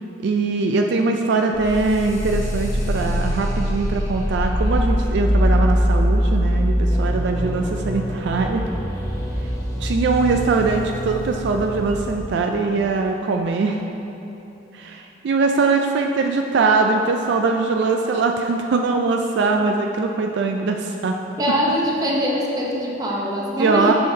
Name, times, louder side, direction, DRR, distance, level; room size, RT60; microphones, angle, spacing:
voice 1, 0.2-8.6 9.8-13.8 14.7-21.2 23.6-23.9, right 3 dB, 65° right, 3 dB, 0.3 m, -21 dB
sound 1, 1.5-12.2, equal, 20° left, 0.8 m, -23 dB
voice 2, 21.4-23.9, equal, 20° right, -3 dB, 0.8 m, -22 dB
8.4 x 5.6 x 2.7 m, 3.0 s
head